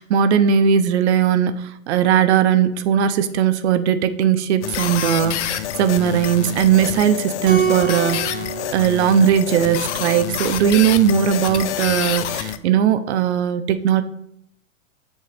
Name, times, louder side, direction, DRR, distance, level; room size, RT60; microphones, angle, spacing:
voice 1, 0.0-8.4 8.7-14.0, right 8 dB, 55° right, 11 dB, 0.8 m, -18 dB
sound 1, 4.6-12.6, left 11 dB, 60° left, 0.8 m, -27 dB
Keyboard (musical), 7.5-10.1, right 8 dB, 35° right, 2.0 m, -26 dB
13.5 x 5.4 x 3.5 m, 0.74 s
hypercardioid pair, 150°, 41 cm